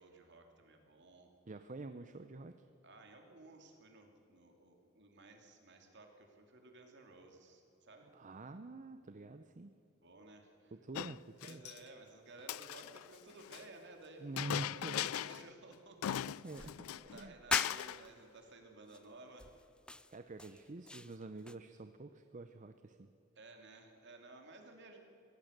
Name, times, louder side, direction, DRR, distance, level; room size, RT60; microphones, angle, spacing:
voice 1, 0.0-1.3 2.8-8.1 10.0-10.7 11.4-16.2 16.6-19.5 23.4-25.0, right 2 dB, 55° right, 3 dB, 2.8 m, -56 dB
voice 2, 1.5-2.7 8.1-9.7 10.8-11.6 14.2-15.1 16.3-17.3 20.1-23.1, right 2 dB, 35° right, 9 dB, 0.6 m, -47 dB
Chink clink, 10.9-11.8 12.4-13.6 14.4-15.5 15.7-15.8 16.0-17.2 17.5-18.0, left 12 dB, 85° left, 0.3 m, -39 dB
sound 1, 16.4-18.1 18.9-19.1 19.4-21.6, left 1 dB, 5° left, 0.4 m, -43 dB
23.5 x 17.0 x 6.7 m, 3.0 s
head